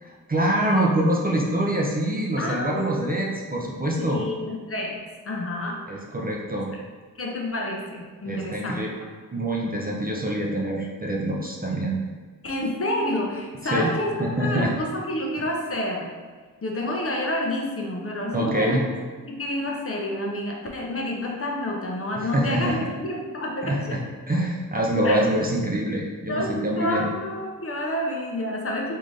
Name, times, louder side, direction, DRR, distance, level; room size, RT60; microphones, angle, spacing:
voice 1, 0.0-4.2 5.9-6.7 8.3-8.9 9.3-12.0 13.6-13.9 14.2-14.7 18.3-18.8 22.2-22.8 23.6-24.0 24.3-27.1, right 1 dB, 25° right, -2 dB, 0.4 m, -25 dB
voice 2, 2.4-3.0 4.1-5.9 7.2-8.8 11.7-12.0 12.4-16.2 16.6-18.8 19.3-24.0 25.0-25.2 26.3-29.0, left 1 dB, 40° left, -1 dB, 0.5 m, -29 dB
3.6 x 2.5 x 3.2 m, 1.4 s
wide cardioid pair, 105°, 36 cm